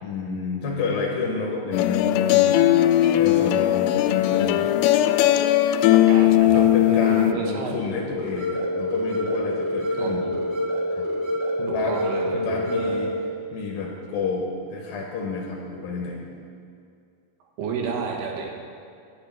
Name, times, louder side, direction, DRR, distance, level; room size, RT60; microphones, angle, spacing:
voice 1, 0.0-2.6 3.2-4.9 6.2-10.2 10.9-11.1 11.6-12.0 12.3-13.1 13.5-16.2, left 4 dB, 70° left, -2 dB, 2.9 m, -30 dB
sound 1, 1.7-7.3, left 13 dB, 85° left, 2.5 m, -18 dB
voice 2, 5.9-7.8 10.0-10.3 11.7-12.4 12.7-12.9 17.6-18.5, right 5 dB, 80° right, 0 dB, 3.4 m, -31 dB
sound 2, 8.1-13.1, left 1 dB, 30° left, 3.3 m, -27 dB
11.5 x 6.4 x 9.0 m, 2.4 s
omnidirectional pair, 4.7 m